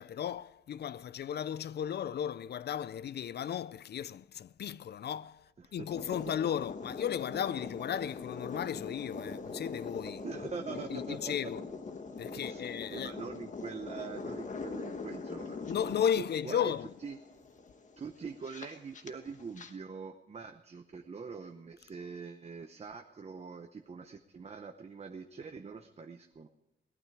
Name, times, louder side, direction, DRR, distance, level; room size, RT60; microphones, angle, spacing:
voice 1, 0.0-10.2 10.9-11.6 12.2-13.1 15.7-16.9, left 9 dB, 60° left, 0.4 m, -35 dB
voice 2, 5.6-5.9 10.2-11.3 12.3-15.8 16.1-16.7 17.0-17.2 18.0-26.5, right 5 dB, 35° right, 0.8 m, -44 dB
sound 1, 5.9-19.7, left 4 dB, 40° left, 1.2 m, -42 dB
17.5 x 12.5 x 4.8 m
wide cardioid pair, 155°, 20 cm